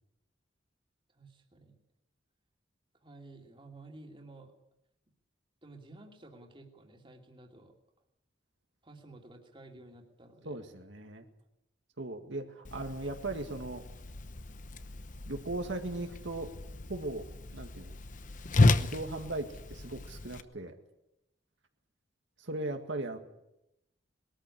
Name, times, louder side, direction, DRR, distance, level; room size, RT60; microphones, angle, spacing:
voice 1, 1.1-1.8 3.0-4.5 5.6-7.7 8.8-10.6, right 2 dB, 25° right, 2 dB, 2.8 m, -53 dB
voice 2, 10.5-11.3 12.0-13.8 15.3-16.5 16.9-17.2 17.5-17.9 18.8-20.7 22.4-23.2, right 2 dB, 75° right, 4 dB, 2.0 m, -38 dB
Whoosh swoosh swish, 12.6-20.4, left 2 dB, 45° left, 0.9 m, -32 dB
21.5 x 13.5 x 9.9 m, 0.88 s
head